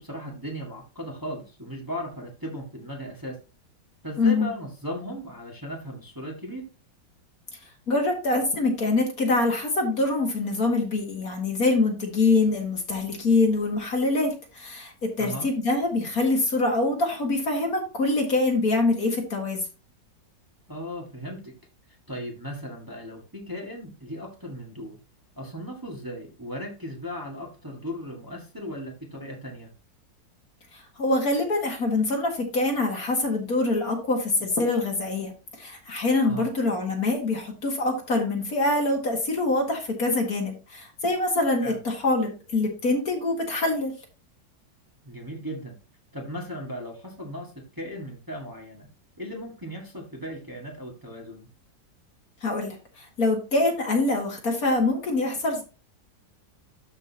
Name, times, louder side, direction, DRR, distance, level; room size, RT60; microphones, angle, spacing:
voice 1, 0.0-3.4 4.0-6.7 15.2-15.5 20.7-21.5 22.1-25.0 25.3-29.7 36.2-36.5 41.6-41.8 45.0-45.7 46.1-48.9 49.2-51.5, equal, 10° right, -1 dB, 1.6 m, -37 dB
voice 2, 4.2-4.5 7.9-19.6 30.7-35.3 35.6-43.9 52.4-55.6, left 2 dB, 55° left, 2 dB, 2.2 m, -24 dB
12.5 x 5.3 x 2.8 m, 0.33 s
omnidirectional pair, 1.9 m